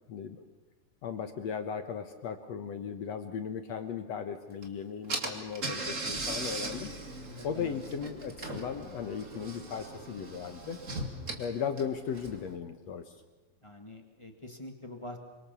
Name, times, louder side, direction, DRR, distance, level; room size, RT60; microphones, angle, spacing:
voice 1, 0.1-0.5 1.0-6.9 7.4-10.8 11.4-13.1, left 7 dB, 60° left, 7 dB, 1.9 m, -37 dB
Car / Engine, 4.6-4.7 5.1-12.5, right 2 dB, 25° right, 2.0 m, -39 dB
voice 2, 7.3-7.8 13.6-15.2, left 1 dB, 40° left, 4 dB, 0.4 m, -45 dB
27.5 x 24.5 x 7.0 m, 1.1 s
omnidirectional pair, 4.2 m